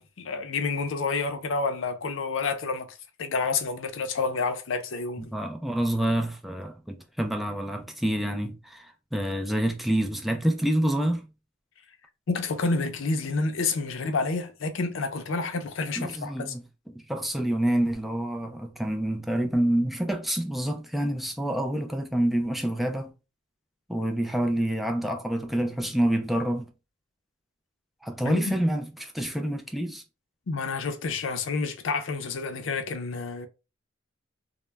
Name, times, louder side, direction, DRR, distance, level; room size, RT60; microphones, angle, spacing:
voice 1, 0.0-2.9 3.2-5.3 12.3-16.5 28.2-28.5 30.5-33.5, left 4 dB, 85° left, 0.5 m, -29 dB
voice 2, 5.3-11.2 16.0-16.6 16.9-23.1 23.9-26.7 28.0-30.0, right 1 dB, ahead, 0.3 m, -27 dB
2.1 x 2.1 x 3.2 m
head